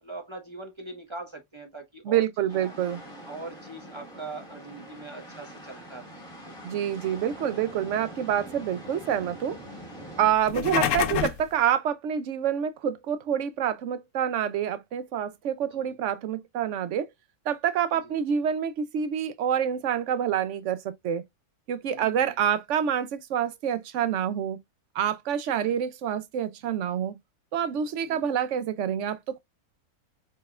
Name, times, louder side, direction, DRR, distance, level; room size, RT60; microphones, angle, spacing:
voice 1, 0.0-2.3 2.5-2.7 3.2-6.6 15.6-16.0 17.9-18.1 21.9-22.4 25.5-25.8 28.0-28.3, right 2 dB, 20° right, 0.9 m, -42 dB
voice 2, 2.1-3.0 6.6-9.6 10.2-17.1 17.5-21.2 21.7-24.6 24.9-27.2 27.5-29.4, right 9 dB, 65° right, 0.8 m, -27 dB
sound 1, 2.5-10.3, right 1 dB, 5° left, 1.8 m, -44 dB
sound 2, 10.3-11.5, left 10 dB, 65° left, 0.9 m, -27 dB
4.3 x 4.3 x 2.3 m
omnidirectional pair, 1.6 m